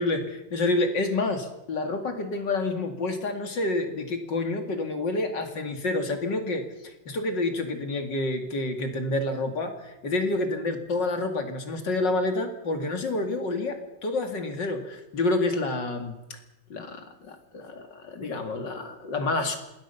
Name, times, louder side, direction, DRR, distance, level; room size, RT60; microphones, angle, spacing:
voice 1, 0.0-16.4 16.7-19.6, left 2 dB, 70° left, 5 dB, 3.0 m, -28 dB
26.5 x 20.5 x 5.8 m, 0.93 s
omnidirectional pair, 2.0 m